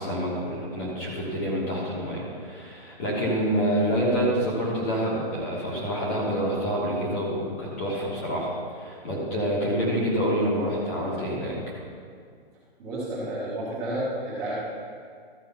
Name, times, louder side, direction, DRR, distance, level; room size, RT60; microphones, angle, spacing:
voice 1, 0.0-11.6, equal, 15° left, -5 dB, 1.2 m, -27 dB
voice 2, 12.8-14.5, right 1 dB, 10° right, -9 dB, 1.2 m, -31 dB
13.5 x 4.6 x 5.7 m, 2.1 s
hypercardioid pair, 175°, 31 cm